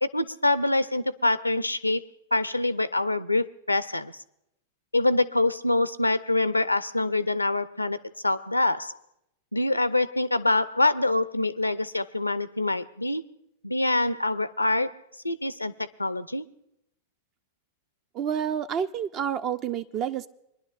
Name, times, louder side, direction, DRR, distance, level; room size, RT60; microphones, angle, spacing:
voice 1, 0.0-4.1 4.9-9.0 9.5-13.2 13.6-15.0 15.2-16.5, left 2 dB, 85° left, 16 dB, 0.5 m, -25 dB
voice 2, 18.1-20.3, right 8 dB, 35° right, 13 dB, 0.4 m, -29 dB
25.0 x 11.0 x 2.5 m, 0.81 s
figure-of-eight pair, 90°, 0 cm